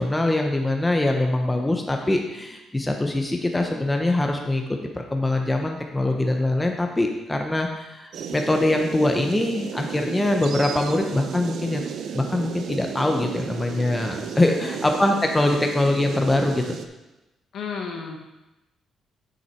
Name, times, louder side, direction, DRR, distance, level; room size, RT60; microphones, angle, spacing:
voice 1, 0.0-4.6 5.1-11.8 12.1-16.8, left 1 dB, 15° left, 3 dB, 0.9 m, -23 dB
sound 1, 8.1-16.9, right 7 dB, 70° right, 0.6 m, -34 dB
voice 2, 14.3-14.9 17.5-18.2, left 5 dB, 65° left, 2 dB, 1.3 m, -34 dB
6.6 x 6.3 x 4.4 m, 1.0 s
cardioid pair, 90°, 0 cm